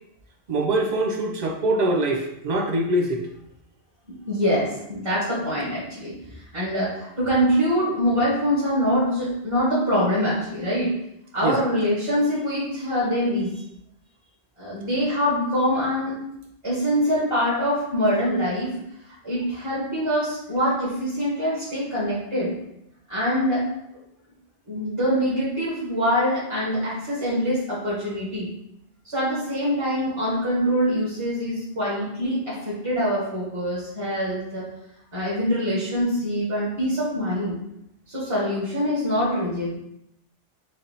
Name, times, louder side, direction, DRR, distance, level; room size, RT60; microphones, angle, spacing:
voice 1, 0.5-3.2 11.4-11.6, right 1 dB, 55° right, 1 dB, 0.5 m, -23 dB
voice 2, 4.1-6.1 6.5-10.9 11.3-13.6 14.6-16.2 16.6-18.7 19.1-22.5 23.1-23.6 24.7-28.5 29.0-34.6 35.1-37.6 38.1-39.7, equal, 25° right, -8 dB, 1.3 m, -24 dB
3.3 x 2.7 x 4.0 m, 0.80 s
omnidirectional pair, 1.2 m